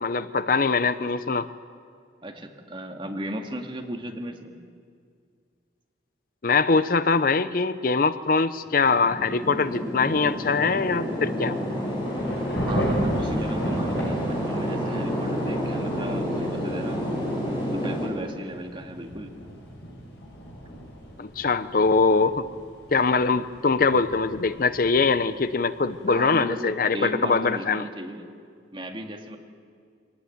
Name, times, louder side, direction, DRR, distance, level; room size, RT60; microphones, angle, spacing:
voice 1, 0.0-1.5 6.4-11.6 21.2-22.5 22.9-27.9, left 4 dB, 50° left, 13 dB, 0.6 m, -22 dB
voice 2, 2.2-4.5 12.6-17.0 17.7-19.3 26.1-28.3 28.7-29.4, right 1 dB, 25° right, 3 dB, 2.0 m, -35 dB
sound 1, 8.7-18.1, equal, 25° left, 7.2 m, -29 dB
Thunder / Rain, 11.7-26.1, equal, 65° left, 7.1 m, -35 dB
23.5 x 17.5 x 9.5 m, 2.2 s
head